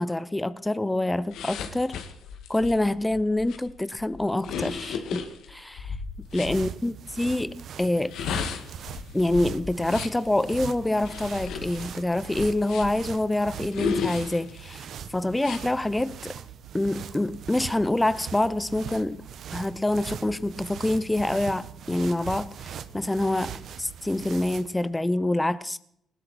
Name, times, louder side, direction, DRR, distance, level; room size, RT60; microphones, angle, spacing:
voice 1, 0.0-2.0 2.5-5.2 5.5-8.1 9.1-16.3 16.7-19.2 19.5-25.8, left 1 dB, 10° left, 0.7 m, -26 dB
sound 1, 1.3-6.6 7.9-10.3 11.0-13.1 13.7-14.8 15.4-15.6, left 6 dB, 80° left, 1.9 m, -34 dB
sound 2, 6.1-24.8, right 8 dB, 70° right, 1.1 m, -41 dB
19.5 x 17.0 x 4.3 m
cardioid pair, 90°, 0 cm